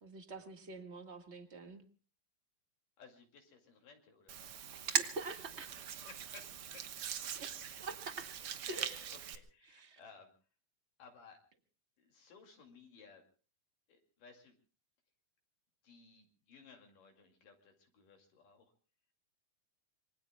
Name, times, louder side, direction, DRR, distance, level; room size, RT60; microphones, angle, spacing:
voice 1, 0.0-1.8 4.7-5.7 7.4-7.5 7.8-8.3 8.7-9.1 9.7-10.0, right 3 dB, 35° right, 6 dB, 1.0 m, -46 dB
voice 2, 3.0-4.5 6.0-6.8 8.0-8.5 8.8-10.3 11.0-11.4 12.0-13.2 13.9-14.6 15.8-18.7, left 5 dB, 65° left, 3 dB, 3.9 m, -59 dB
Hands, 4.3-9.4, right 9 dB, 75° right, 1.2 m, -40 dB
26.0 x 24.0 x 2.3 m, 0.37 s
omnidirectional pair, 4.2 m